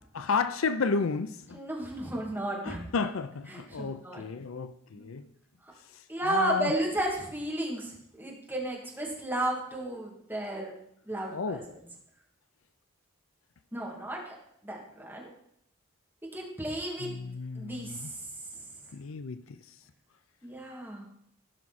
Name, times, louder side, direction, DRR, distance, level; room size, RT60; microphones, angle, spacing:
voice 1, 0.1-1.6 2.6-5.3 5.9-6.7 11.3-11.6 17.0-18.1 18.9-19.6, left 4 dB, 70° left, 11 dB, 0.5 m, -32 dB
voice 2, 1.5-2.8 3.5-4.2 4.9-5.1 6.1-10.7 11.0-11.6 13.7-14.4 14.6-15.3 16.3-17.1 17.6-18.3 18.5-18.6 20.4-21.1, right 1 dB, 10° right, -3 dB, 2.4 m, -33 dB
15.5 x 5.8 x 4.2 m, 0.73 s
head